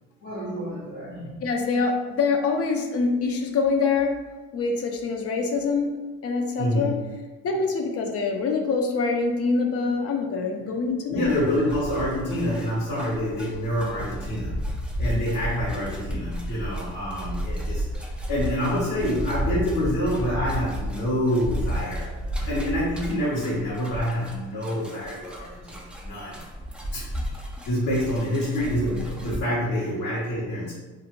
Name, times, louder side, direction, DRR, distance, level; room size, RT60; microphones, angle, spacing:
voice 1, 0.2-1.4 6.6-6.9 11.1-14.6 15.0-17.8 18.3-22.1 22.5-26.4 26.9-27.1 27.6-30.7, equal, 80° left, -9 dB, 1.1 m, -27 dB
voice 2, 1.4-4.2 4.5-7.0 7.4-11.3, left 4 dB, 45° left, 3 dB, 0.5 m, -25 dB
sound 1, 11.2-29.4, equal, 5° right, 0.3 m, -33 dB
2.5 x 2.1 x 2.9 m, 1.2 s
supercardioid pair, 75°, 32 cm